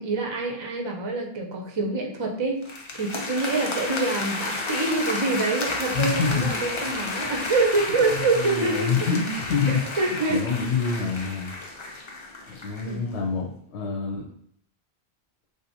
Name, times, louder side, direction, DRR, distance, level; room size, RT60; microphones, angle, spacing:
voice 1, 0.0-8.9 9.7-10.5 12.9-13.3, right 3 dB, 50° right, 2 dB, 0.3 m, -26 dB
sound 1, 2.6-12.9, left 2 dB, 50° left, 0.3 m, -32 dB
voice 2, 5.9-6.5 8.0-11.5 12.5-14.2, left 5 dB, 90° left, 0 dB, 0.9 m, -27 dB
3.4 x 2.6 x 2.7 m, 0.65 s
omnidirectional pair, 1.1 m